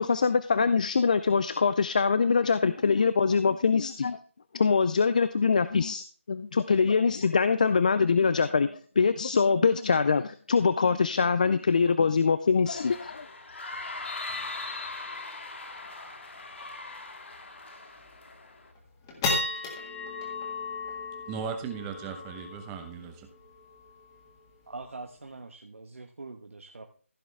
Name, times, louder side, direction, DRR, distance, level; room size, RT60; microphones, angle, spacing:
voice 1, 0.0-4.2 4.5-13.3, left 5 dB, 35° left, 14 dB, 0.4 m, -24 dB
sound 1, 12.7-18.7, left 3 dB, 60° left, 1.9 m, -40 dB
sound 2, 15.7-15.8 16.1-16.2 16.6-16.8 17.3-17.4 18.0-18.3 18.7-25.3, left 3 dB, 15° left, 1.8 m, -36 dB
voice 2, 21.3-23.3, right 6 dB, 10° right, 6 dB, 0.8 m, -37 dB
voice 3, 24.7-26.9, right 3 dB, 70° right, 3 dB, 1.2 m, -43 dB
15.0 x 6.1 x 3.4 m, 0.42 s
figure-of-eight pair, 165°, 7 cm